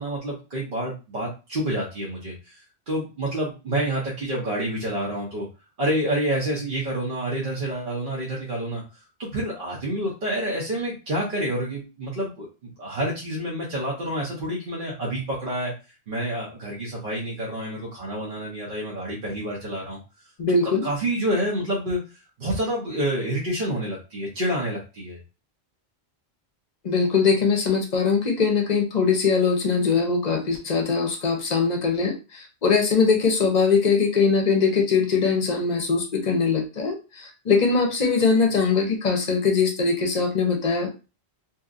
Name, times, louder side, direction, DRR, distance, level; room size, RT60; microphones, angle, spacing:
voice 1, 0.0-2.6 2.9-5.5 5.8-8.8 9.2-15.7 16.1-20.0 20.6-22.0 22.4-25.2, right 1 dB, 55° right, -4 dB, 1.0 m, -28 dB
voice 2, 20.4-20.8 26.8-41.0, left 5 dB, 45° left, 3 dB, 0.8 m, -22 dB
2.8 x 2.7 x 2.4 m, 0.30 s
omnidirectional pair, 1.1 m